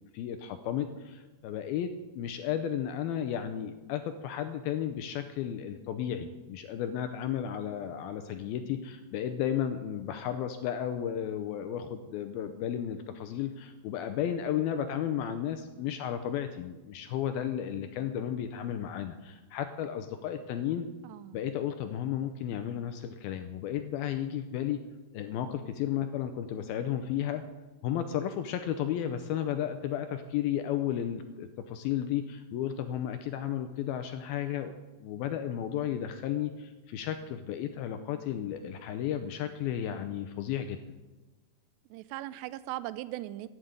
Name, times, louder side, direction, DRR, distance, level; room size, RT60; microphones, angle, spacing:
voice 1, 0.1-20.9 21.3-24.8 25.1-27.4 27.8-34.8 35.0-41.0, left 10 dB, 85° left, 8 dB, 2.2 m, -33 dB
voice 2, 21.0-21.4 41.9-43.5, right 15 dB, 85° right, 15 dB, 2.8 m, -39 dB
11.5 x 8.0 x 8.8 m, 1.2 s
omnidirectional pair, 4.9 m